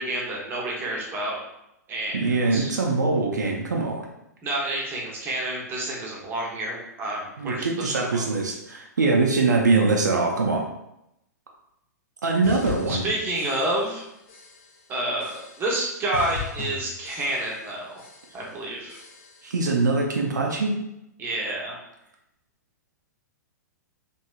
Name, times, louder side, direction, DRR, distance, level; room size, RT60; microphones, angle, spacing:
voice 1, 0.0-1.4 1.9-2.7 4.4-8.2 12.9-14.0 14.9-18.0 18.3-19.0 21.2-21.8, right 1 dB, 20° right, -3 dB, 0.8 m, -29 dB
voice 2, 2.1-4.0 7.4-10.6 12.2-13.0 19.4-20.7, right 3 dB, 75° right, 0 dB, 0.5 m, -23 dB
sound 1, 12.4-14.0 14.3-14.8 15.2-15.8 16.1-17.7 18.0-18.5 18.9-19.5, left 6 dB, 50° left, 0.6 m, -39 dB
3.0 x 2.6 x 2.3 m, 0.84 s
figure-of-eight pair, 110°, 10 cm